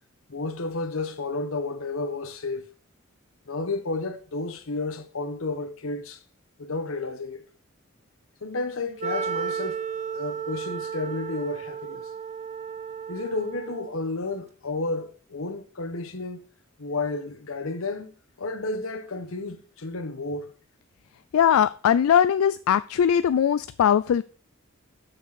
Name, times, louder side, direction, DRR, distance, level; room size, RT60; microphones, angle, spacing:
voice 1, 0.3-2.7 3.5-6.2 6.6-7.4 8.4-9.8 10.1-12.1 13.1-16.5 16.8-18.1 18.4-20.5, left 3 dB, 75° left, 1.1 m, -31 dB
Wind instrument woodwind instrument, 9.0-14.1, right 7 dB, 35° right, 0.6 m, -33 dB
voice 2, 21.3-24.2, left 8 dB, 90° left, 0.3 m, -20 dB
6.4 x 6.4 x 6.1 m
head